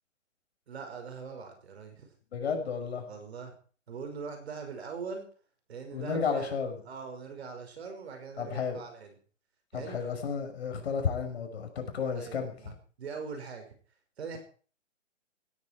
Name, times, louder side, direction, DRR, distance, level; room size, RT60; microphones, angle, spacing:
voice 1, 0.7-2.1 3.1-3.5 3.9-5.3 5.7-9.2 9.7-10.1 12.1-13.7 14.2-14.4, right 5 dB, 55° right, 5 dB, 5.8 m, -42 dB
voice 2, 2.3-3.1 5.9-6.8 8.4-8.8 9.7-12.5, left 6 dB, 55° left, 5 dB, 5.8 m, -32 dB
16.5 x 14.5 x 4.7 m, 0.42 s
hypercardioid pair, 145°, 38 cm